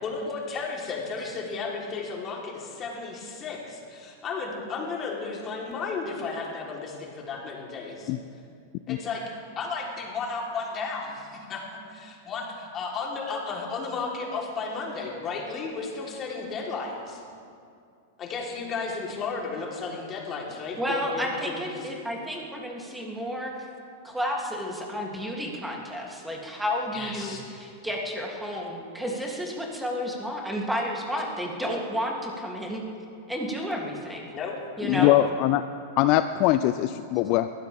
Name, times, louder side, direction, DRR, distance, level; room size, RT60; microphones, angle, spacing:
voice 1, 0.0-8.1 8.9-9.2 9.6-17.2 18.2-21.9 26.9-27.4 34.3-34.5 34.9-35.1, left 4 dB, 30° left, -2 dB, 3.8 m, -34 dB
voice 2, 20.8-23.5 24.0-32.8 33.3-34.3 34.8-35.1, equal, 5° right, -1 dB, 3.0 m, -31 dB
voice 3, 34.8-35.6 36.0-37.5, left 14 dB, 50° left, 11 dB, 0.5 m, -22 dB
22.0 x 16.0 x 3.6 m, 2.3 s
hypercardioid pair, 95°, 0 cm